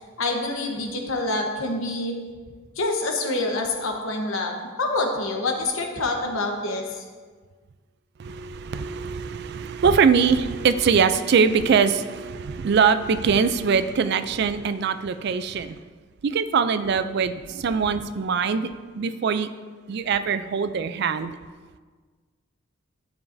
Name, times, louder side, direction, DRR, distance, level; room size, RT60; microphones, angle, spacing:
voice 1, 0.2-2.2 2.8-7.0, left 2 dB, 75° left, 2 dB, 1.1 m, -26 dB
voice 2, 8.2-15.8 16.2-18.7 19.0-19.5 19.9-21.4, right 6 dB, 50° right, 12 dB, 0.3 m, -22 dB
11.0 x 7.1 x 2.7 m, 1.5 s
head